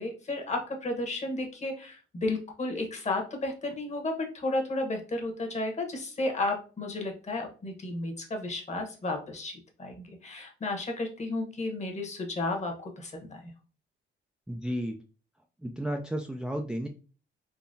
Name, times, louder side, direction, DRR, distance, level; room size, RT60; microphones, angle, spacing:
voice 1, 0.0-13.5, left 2 dB, 35° left, 3 dB, 1.1 m, -33 dB
voice 2, 14.5-15.0 15.6-16.9, equal, 5° right, 3 dB, 0.3 m, -32 dB
3.9 x 2.8 x 2.6 m, 0.36 s
cardioid pair, 90°, 20 cm